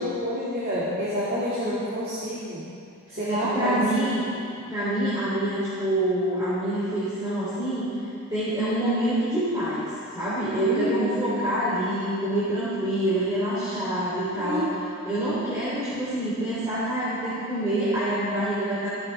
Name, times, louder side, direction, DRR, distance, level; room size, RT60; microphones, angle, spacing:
voice 1, 0.0-2.7 3.1-3.9 10.6-11.5 14.4-14.7, equal, 45° right, -8 dB, 2.4 m, -28 dB
voice 2, 3.3-4.2 4.7-7.9 8.3-14.7 15.0-18.9, right 1 dB, 15° right, -12 dB, 3.6 m, -26 dB
16.0 x 14.5 x 3.6 m, 2.4 s
head